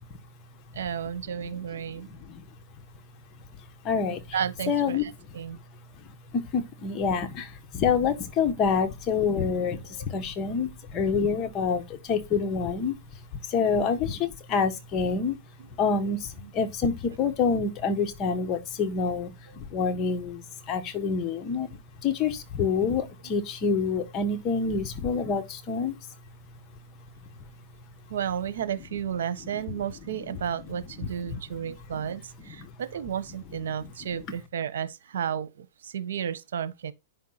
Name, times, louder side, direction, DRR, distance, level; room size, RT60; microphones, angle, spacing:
voice 1, 0.7-2.1 4.3-5.6 9.8-10.0 11.6-11.7 13.6-13.9 15.6-15.7 16.4-16.5 19.5-19.6 21.6-21.7 23.2-23.3 28.1-36.9, right 8 dB, 80° right, 1.2 m, -33 dB
voice 2, 2.0-2.4 3.8-4.4 4.7-5.0 6.3-15.4 15.8-26.1 31.0-31.4 32.6-32.7 33.8-33.9, left 5 dB, 30° left, 1.4 m, -27 dB
9.3 x 5.8 x 4.1 m
hypercardioid pair, 140°, 0 cm